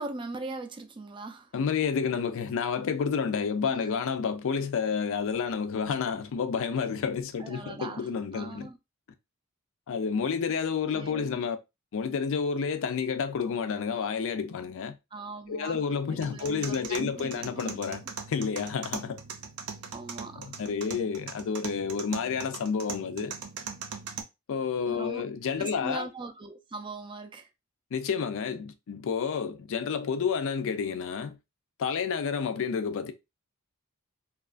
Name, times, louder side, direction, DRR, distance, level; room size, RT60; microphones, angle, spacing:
voice 1, 0.0-1.5 3.7-3.8 7.4-8.1 8.3-8.8 10.9-11.4 15.1-15.8 16.1-17.7 19.9-20.6 24.9-25.2 25.6-27.5, right 3 dB, 20° right, 0.4 m, -40 dB
voice 2, 1.5-8.7 9.9-11.6 11.9-15.0 15.5-19.2 20.4-23.4 24.5-26.1 27.9-31.4 31.8-33.1, left 6 dB, 65° left, 0.4 m, -30 dB
sound 1, 16.2-24.2, right 6 dB, 85° right, 0.5 m, -41 dB
2.8 x 2.3 x 2.4 m
head